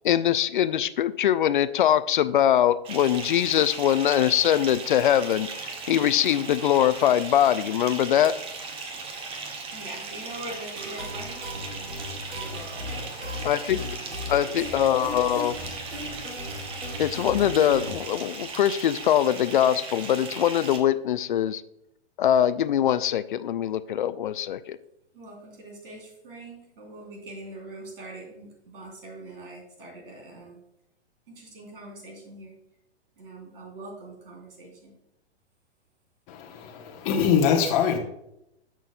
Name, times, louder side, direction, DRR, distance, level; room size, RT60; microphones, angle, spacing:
voice 1, 0.0-8.3 13.4-13.9 14.3-15.6 17.0-21.6 22.2-24.8, left 10 dB, 50° left, 15 dB, 0.5 m, -22 dB
Bathtub (filling or washing) / Fill (with liquid), 2.9-20.8, right 4 dB, 15° right, 0.8 m, -38 dB
voice 2, 9.7-11.9 12.3-13.5 14.0-14.7 15.0-15.2 25.1-30.6 31.3-32.6 33.2-34.9, right 2 dB, 55° right, 0 dB, 3.4 m, -43 dB
sound 1, 10.8-17.9, left 1 dB, 85° right, 1.6 m, -37 dB
voice 3, 36.3-38.0, left 7 dB, 30° left, 1 dB, 1.0 m, -23 dB
13.5 x 6.2 x 2.2 m, 0.80 s
figure-of-eight pair, 110°, 33 cm